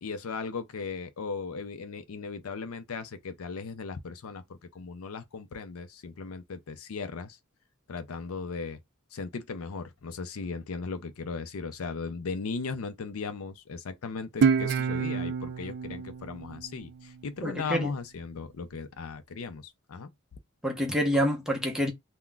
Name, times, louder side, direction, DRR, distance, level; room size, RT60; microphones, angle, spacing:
voice 1, 0.0-7.4 7.9-8.8 9.1-20.1, left 4 dB, 75° left, 0.5 m, -37 dB
Guitar, 14.4-17.6, right 6 dB, 50° right, 0.4 m, -28 dB
voice 2, 17.4-17.9 20.6-21.9, equal, 5° right, 0.7 m, -27 dB
2.3 x 2.2 x 3.7 m
head